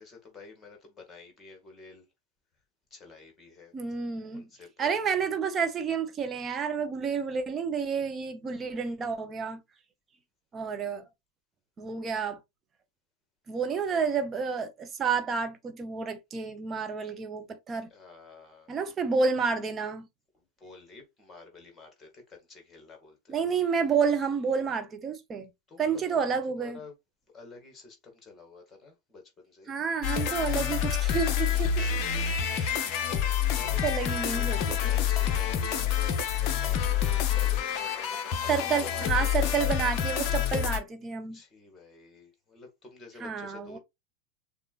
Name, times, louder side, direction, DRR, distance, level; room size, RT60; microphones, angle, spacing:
voice 1, 0.0-2.1 2.9-3.7 4.3-4.9 17.9-18.7 20.3-23.8 25.7-26.3 26.6-26.9 27.3-29.7 33.5-34.6 34.9-39.6 41.3-43.8, left 4 dB, 15° left, 1.9 m, -50 dB
voice 2, 3.7-4.5 4.8-9.6 10.5-11.0 11.8-12.4 13.5-17.9 18.7-20.1 23.3-25.5 25.8-26.8 29.7-31.9 32.5-32.8 33.8-34.9 38.5-41.4 43.2-43.8, right 6 dB, 25° right, 0.8 m, -30 dB
sound 1, 30.0-40.8, left 9 dB, 40° left, 0.7 m, -27 dB
6.6 x 2.5 x 2.4 m
figure-of-eight pair, 90°, 0 cm